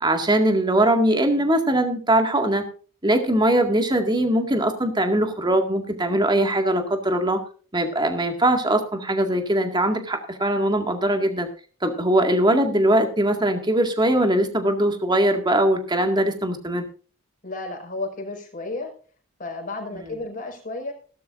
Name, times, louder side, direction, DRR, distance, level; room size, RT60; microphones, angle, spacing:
voice 1, 0.0-2.6 3.0-7.4 7.7-11.5 11.8-16.8, right 1 dB, 20° right, 5 dB, 2.0 m, -21 dB
voice 2, 17.4-18.9 19.4-20.9, left 2 dB, 40° left, 1 dB, 5.2 m, -32 dB
17.5 x 12.5 x 2.6 m, 0.40 s
head